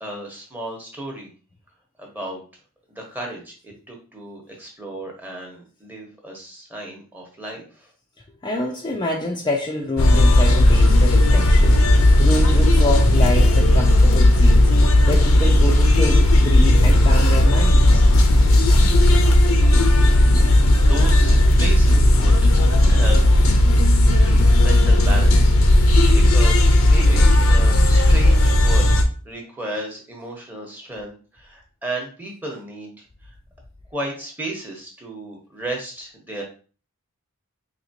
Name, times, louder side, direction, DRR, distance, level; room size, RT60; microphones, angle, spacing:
voice 1, 0.0-1.3 2.0-2.4 2.9-7.9 20.0-23.2 24.2-29.0 29.2-33.0 33.9-36.4, right 1 dB, 10° right, 1.0 m, -34 dB
voice 2, 8.4-18.0, left 1 dB, 20° left, 0.4 m, -27 dB
sound 1, 10.0-29.0, left 1 dB, 80° left, 0.6 m, -14 dB
4.2 x 2.9 x 2.8 m
head